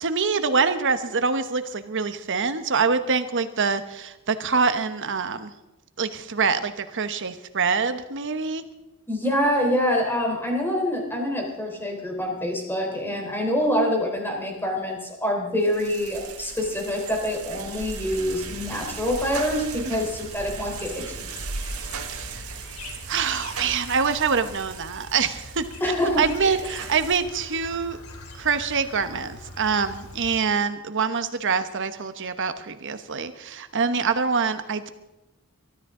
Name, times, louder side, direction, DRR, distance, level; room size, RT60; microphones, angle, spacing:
voice 1, 0.0-5.5 6.0-8.6 20.0-20.1 22.1-22.4 23.1-25.7 26.2-28.0 28.4-34.9, right 5 dB, 60° right, 10 dB, 1.1 m, -25 dB
voice 2, 9.1-21.3 25.8-26.6, equal, 10° left, 0 dB, 3.8 m, -26 dB
sound 1, 15.6-27.2, right 5 dB, 85° right, 1.7 m, -37 dB
Chirp tweet, 18.1-30.4, left 2 dB, 85° left, 2.5 m, -43 dB
22.5 x 13.0 x 3.8 m, 0.97 s
head